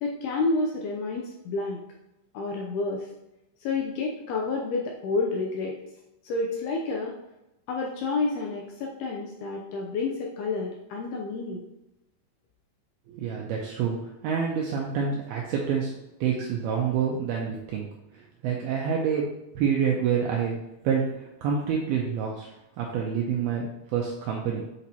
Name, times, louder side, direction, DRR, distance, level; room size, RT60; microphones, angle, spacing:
voice 1, 0.0-1.8 2.3-3.1 3.6-5.8 6.2-7.1 7.7-11.6, left 3 dB, 75° left, -1 dB, 2.4 m, -29 dB
voice 2, 13.1-15.9 16.2-17.9 18.1-22.5 22.8-24.6, right 7 dB, 85° right, -1 dB, 2.2 m, -28 dB
8.2 x 5.1 x 2.9 m, 0.90 s
omnidirectional pair, 5.3 m